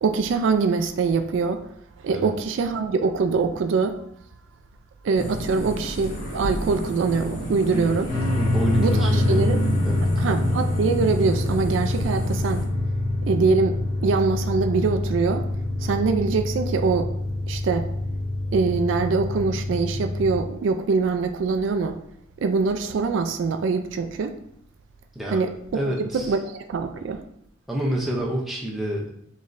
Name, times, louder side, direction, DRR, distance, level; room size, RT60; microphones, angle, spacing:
voice 1, 0.0-1.6 2.0-4.0 5.0-8.1 8.8-9.6 10.2-12.7 13.2-15.5 15.8-17.1 17.5-17.9 18.5-22.0 22.4-24.4 25.3-27.2, right 4 dB, 65° right, 7 dB, 0.3 m, -24 dB
sound 1, 5.1-12.7, equal, 70° left, 1.1 m, -32 dB
voice 2, 7.7-8.0 8.4-9.6 9.8-10.1 25.2-25.4 25.7-26.4 27.7-29.1, right 1 dB, ahead, -3 dB, 0.5 m, -28 dB
sound 2, 8.1-20.4, left 1 dB, 50° left, 1.5 m, -25 dB
6.1 x 3.1 x 2.5 m, 0.72 s
head